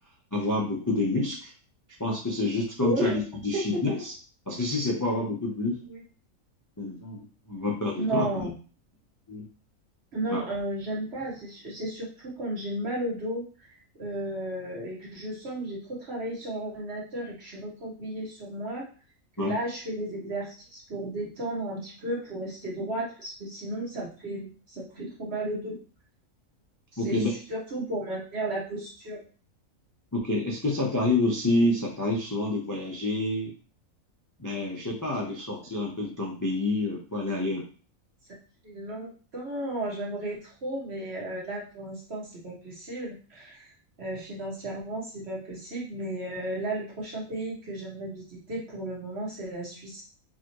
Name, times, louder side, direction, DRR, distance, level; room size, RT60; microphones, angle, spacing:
voice 1, 0.3-1.5 2.0-4.1 4.5-5.8 6.8-8.5 9.3-9.4 10.3-10.4 19.4-19.6 27.0-27.3 30.1-33.5 34.4-37.6, left 2 dB, 20° left, -3 dB, 0.5 m, -28 dB
voice 2, 2.8-3.2 3.5-3.8 5.9-6.0 8.0-8.5 10.1-13.5 14.0-18.8 19.4-25.8 26.9-29.2 38.6-43.7 44.0-50.0, right 1 dB, 50° right, -4 dB, 1.6 m, -34 dB
4.7 x 2.9 x 3.0 m, 0.38 s
omnidirectional pair, 1.4 m